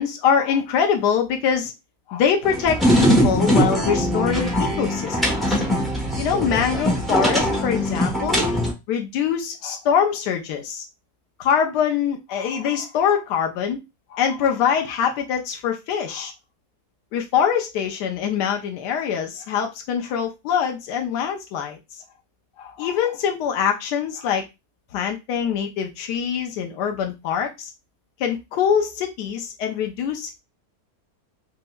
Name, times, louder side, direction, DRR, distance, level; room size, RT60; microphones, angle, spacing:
voice 1, 0.0-1.7 2.1-5.6 6.2-8.5 8.9-10.8 11.4-13.8 14.1-16.3 17.1-21.8 22.6-24.4 24.9-27.7 28.2-30.4, left 7 dB, 90° left, 3 dB, 1.3 m, -24 dB
sound 1, 2.4-8.7, equal, ahead, 0.6 m, -21 dB
5.3 x 2.1 x 2.2 m, 0.23 s
omnidirectional pair, 1.8 m